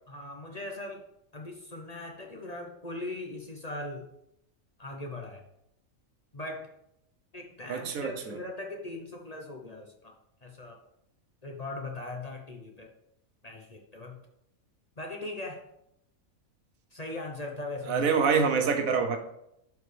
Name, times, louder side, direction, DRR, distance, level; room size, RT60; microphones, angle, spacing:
voice 1, 0.1-1.1 1.3-4.1 4.8-5.4 6.3-6.7 7.3-10.1 10.4-10.8 11.4-12.9 13.4-14.2 15.0-15.6 16.9-18.1, left 2 dB, 35° left, 1 dB, 0.8 m, -39 dB
voice 2, 7.7-8.3 17.9-19.2, right 5 dB, 75° right, 6 dB, 1.2 m, -26 dB
11.5 x 4.7 x 3.3 m, 0.80 s
omnidirectional pair, 1.5 m